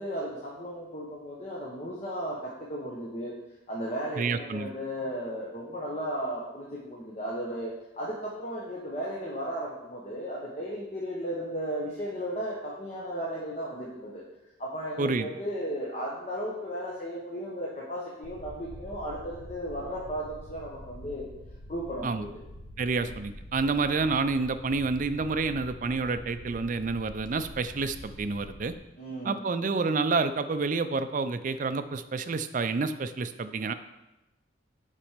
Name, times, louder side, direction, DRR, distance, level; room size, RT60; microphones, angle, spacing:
voice 1, 0.0-2.4 2.7-3.3 3.7-14.2 14.6-21.3 21.7-22.3 22.8-23.1 29.0-29.4, equal, 35° left, -5 dB, 1.1 m, -35 dB
voice 2, 4.2-4.7 15.0-15.3 22.0-22.2 22.8-28.7 29.2-33.7, right 4 dB, 40° right, 10 dB, 0.4 m, -29 dB
sound 1, 18.2-28.8, left 1 dB, 85° left, 1.0 m, -46 dB
7.4 x 5.1 x 5.0 m, 0.98 s
head